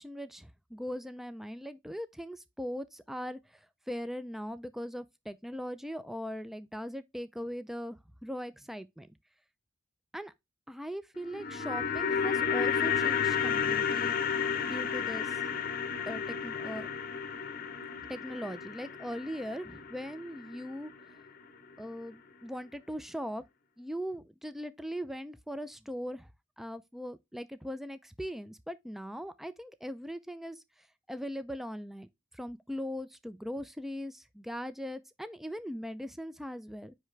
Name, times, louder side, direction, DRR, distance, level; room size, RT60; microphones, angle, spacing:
voice 1, 0.0-9.1 10.1-10.3 10.7-14.2 14.7-15.4 16.1-16.9 18.1-20.9 21.8-23.4 23.8-26.3 26.6-32.1 32.3-36.9, equal, ahead, 0.3 m, -40 dB
sound 1, 11.2-21.4 21.7-21.8, left 7 dB, 50° left, 0.7 m, -32 dB
9.4 x 3.3 x 3.2 m
head